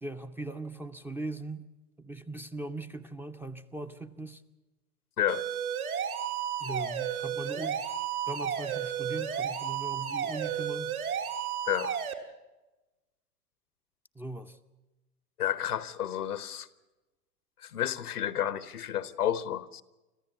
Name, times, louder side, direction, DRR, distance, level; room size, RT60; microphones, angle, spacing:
voice 1, 0.0-1.7 2.0-4.4 6.6-8.0 8.3-10.9 14.2-14.6, right 2 dB, 5° right, 0.6 m, -39 dB
voice 2, 5.2-5.5 11.7-12.0 15.4-16.7 17.6-19.8, left 11 dB, 75° left, 1.1 m, -31 dB
sound 1, 5.3-12.1, right 8 dB, 65° right, 2.5 m, -33 dB
26.0 x 15.0 x 8.1 m
figure-of-eight pair, 95°, 46 cm